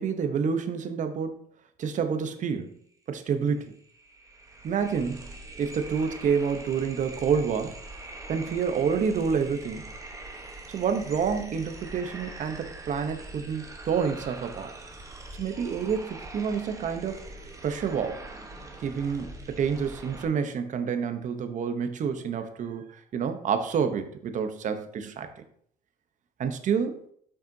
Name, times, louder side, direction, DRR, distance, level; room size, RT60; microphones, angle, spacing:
voice 1, 0.0-1.4 1.8-2.7 3.1-3.7 4.6-5.3 5.6-7.8 8.3-9.8 10.7-14.7 15.3-17.2 17.6-18.2 18.8-22.8 23.1-25.3 26.4-27.0, right 6 dB, 50° right, 8 dB, 0.8 m, -28 dB
sound 1, 3.2-3.3 3.6-20.3, right 2 dB, 20° right, 1.0 m, -43 dB
7.4 x 5.4 x 2.7 m, 0.65 s
cardioid pair, 110°, 17 cm